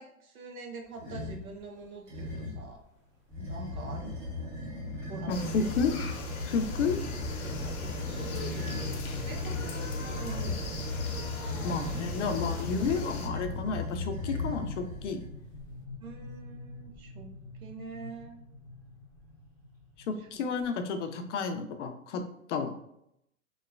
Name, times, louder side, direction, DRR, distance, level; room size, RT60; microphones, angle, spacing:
voice 1, 0.0-2.8 3.4-4.2 5.1-5.8 7.4-10.7 16.0-17.3 17.6-18.4 20.2-20.4, right 3 dB, 80° right, 3 dB, 0.8 m, -45 dB
sound 1, 0.9-1.5 2.1-2.7 3.3-15.3, left 2 dB, 35° right, 1.2 m, -37 dB
sound 2, 1.6-1.8 2.7-2.8 3.2-3.3 3.6-3.9 4.3-20.7, left 2 dB, 5° right, 0.6 m, -44 dB
sound 3, 5.3-13.3, left 3 dB, 85° left, 0.8 m, -40 dB
voice 2, 5.3-5.9 6.5-7.0 11.6-15.2 20.1-22.2 22.5-22.7, left 5 dB, 60° left, 7 dB, 0.5 m, -31 dB
3.0 x 2.1 x 2.3 m, 0.76 s
hypercardioid pair, 130°, 41 cm